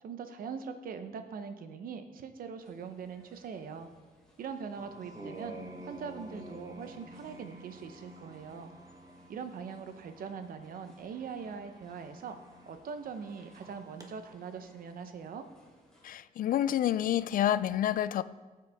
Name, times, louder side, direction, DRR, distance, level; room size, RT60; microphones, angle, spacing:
voice 1, 0.0-3.9 4.4-8.7 9.3-12.4 12.7-15.5, right 6 dB, 75° right, 8 dB, 0.9 m, -42 dB
sound 1, 2.6-16.2, equal, 5° left, 3.1 m, -64 dB
sound 2, 4.8-14.1, right 1 dB, 25° right, 1.3 m, -50 dB
voice 2, 16.0-18.2, left 11 dB, 70° left, 16 dB, 0.4 m, -28 dB
14.5 x 7.7 x 3.5 m, 1.2 s
cardioid pair, 120°, 15 cm